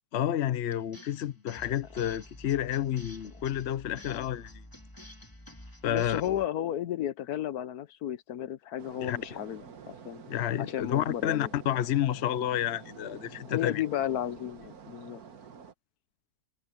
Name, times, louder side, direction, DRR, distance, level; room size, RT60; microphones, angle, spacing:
voice 1, 0.1-4.6 5.8-6.2 9.0-9.4 10.3-13.8, left 11 dB, 55° left, 0.9 m, -30 dB
sound 1, 0.7-6.5, left 1 dB, 15° left, 2.6 m, -49 dB
voice 2, 5.8-10.2 10.6-11.5 13.4-15.2, left 11 dB, 85° left, 1.4 m, -33 dB
sound 2, 8.8-15.7, right 7 dB, 80° right, 1.8 m, -49 dB
omnidirectional pair, 1.6 m